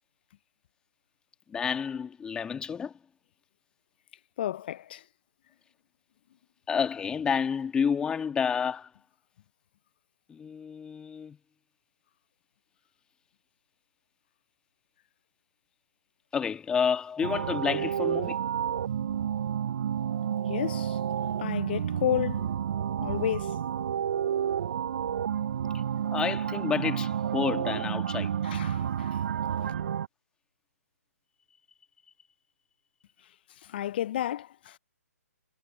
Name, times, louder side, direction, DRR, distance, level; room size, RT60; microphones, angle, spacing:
voice 1, 1.5-2.9 6.7-8.9 10.3-11.4 16.3-18.4 26.1-28.3, left 6 dB, 10° left, 1.8 m, -30 dB
voice 2, 4.4-5.0 20.5-22.6 23.0-23.7 28.4-29.3 29.6-29.7 33.6-34.8, left 12 dB, 40° left, 0.5 m, -32 dB
sound 1, 17.2-30.1, right 9 dB, 50° right, 0.6 m, -30 dB
figure-of-eight pair, 135°, 8 cm